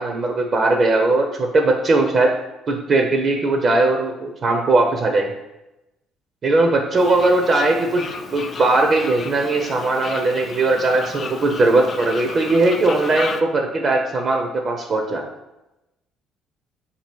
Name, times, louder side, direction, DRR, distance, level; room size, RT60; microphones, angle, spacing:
voice 1, 0.0-2.3 2.7-5.3 6.4-8.1 8.3-15.2, right 2 dB, 45° right, 3 dB, 0.5 m, -19 dB
Fowl, 7.0-13.4, left 5 dB, 50° left, 0.4 m, -34 dB
2.8 x 2.8 x 4.4 m, 0.96 s
hypercardioid pair, 55°, 0 cm